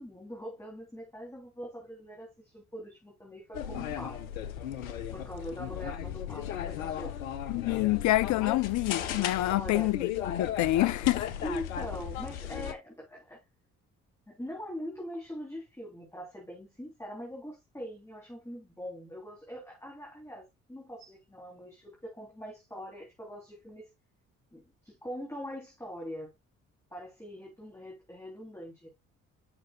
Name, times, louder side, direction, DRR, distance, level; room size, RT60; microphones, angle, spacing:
voice 1, 0.0-4.2 5.1-7.2 9.5-9.9 11.4-13.4 14.3-23.9 24.5-26.3 26.9-28.9, equal, 5° left, 3.3 m, -42 dB
sound 1, 3.5-12.7, left 10 dB, 85° left, 0.7 m, -36 dB
voice 2, 7.5-10.1 10.4-11.3, left 17 dB, 45° left, 0.5 m, -27 dB
9.7 x 6.3 x 2.3 m
figure-of-eight pair, 45°, 40 cm